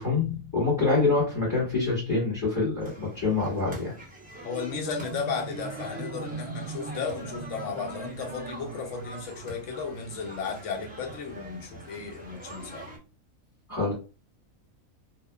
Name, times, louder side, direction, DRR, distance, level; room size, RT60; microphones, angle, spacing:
voice 1, 0.0-3.9 13.7-13.9, left 3 dB, 15° left, 1.1 m, -26 dB
sound 1, 2.8-13.0, right 1 dB, 10° right, 0.7 m, -44 dB
voice 2, 4.4-12.8, left 5 dB, 70° left, 0.9 m, -34 dB
Marimba xylophone, 4.4-9.9, right 3 dB, 65° right, 1.0 m, -40 dB
2.9 x 2.1 x 2.2 m
omnidirectional pair, 1.4 m